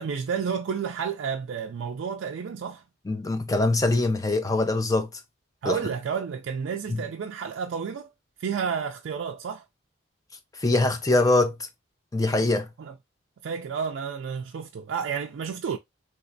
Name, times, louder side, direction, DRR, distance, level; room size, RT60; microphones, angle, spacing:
voice 1, 0.0-2.8 5.6-8.1 8.4-9.6 12.8-12.9 13.4-15.8, right 6 dB, 65° right, 0.3 m, -31 dB
voice 2, 3.1-5.1 5.6-5.8 6.9-7.0 10.6-11.6 12.1-12.7, left 2 dB, 15° left, 0.4 m, -23 dB
3.1 x 2.9 x 2.6 m
head